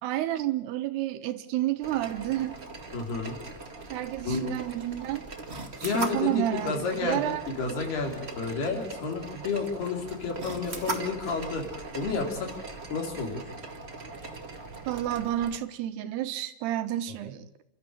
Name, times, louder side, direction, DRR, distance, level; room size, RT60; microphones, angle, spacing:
voice 1, 0.0-2.6 3.9-5.2 5.8-7.4 14.9-17.5, right 13 dB, 85° right, 10 dB, 3.3 m, -30 dB
sound 1, 1.8-15.6, right 3 dB, 30° right, 1.2 m, -40 dB
voice 2, 2.9-3.4 4.3-4.4 5.8-7.3 7.6-12.5 12.9-13.4, left 4 dB, 75° left, 3 dB, 5.6 m, -31 dB
28.5 x 13.5 x 9.0 m, 0.80 s
omnidirectional pair, 4.6 m